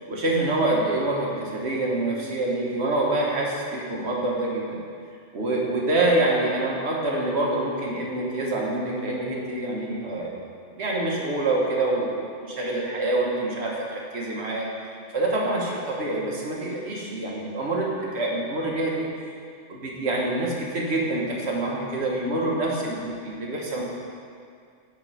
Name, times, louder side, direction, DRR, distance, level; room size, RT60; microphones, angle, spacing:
voice 1, 0.1-4.8 5.3-10.3 10.7-14.7 15.1-19.1 19.7-23.8, right 2 dB, 60° right, -3 dB, 1.4 m, -26 dB
8.9 x 3.7 x 5.4 m, 2.3 s
omnidirectional pair, 1.3 m